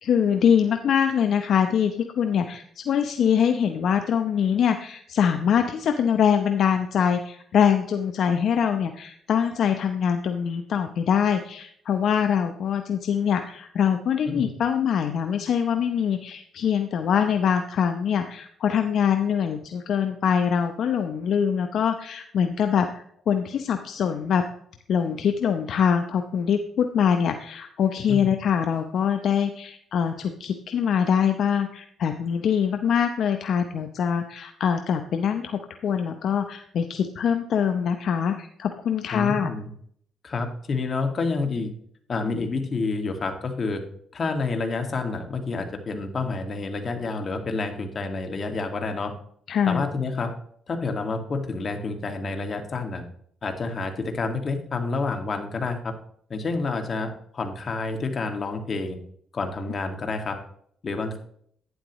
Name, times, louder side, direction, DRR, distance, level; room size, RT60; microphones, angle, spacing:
voice 1, 0.0-24.4 24.9-39.5 49.5-49.8, left 7 dB, 65° left, 7 dB, 0.8 m, -23 dB
voice 2, 39.1-39.7 40.2-41.7 42.1-43.8 44.1-49.1 49.6-50.3 50.7-53.0 53.4-55.9 56.3-59.0 59.3-60.4 60.8-61.2, left 3 dB, 45° left, 5 dB, 2.0 m, -29 dB
11.5 x 9.7 x 3.1 m, 0.64 s
cardioid pair, 90°, 0 cm